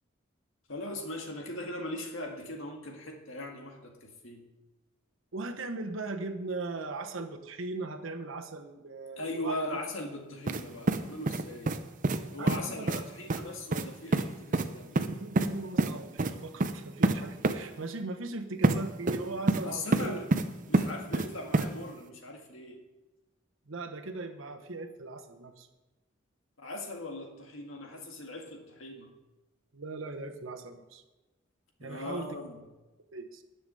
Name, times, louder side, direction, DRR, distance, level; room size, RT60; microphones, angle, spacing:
voice 1, 0.7-4.5 9.2-11.7 12.3-15.0 19.6-20.3 20.7-22.8 26.6-29.1 31.8-32.6, left 1 dB, 75° left, 2 dB, 1.9 m, -39 dB
voice 2, 5.3-9.8 12.4-12.9 15.2-20.2 23.7-25.7 29.7-31.0 31.8-32.5 33.1-33.4, right 3 dB, 75° right, 6 dB, 1.1 m, -39 dB
sound 1, 10.5-10.6 10.9-11.8 12.0-12.2 12.5-12.6 12.9-13.0 13.3-13.4 13.7-13.8 14.1-14.2 14.5-14.7 15.0-15.5 15.8-15.9 16.2-16.3 16.6-16.7 17.0-17.1 17.4-17.5 18.6-18.8 19.1-19.6 19.9-20.4 20.7-21.3 21.5-21.7, right 2 dB, 40° right, 0.6 m, -26 dB
10.5 x 7.0 x 6.9 m, 1.1 s
head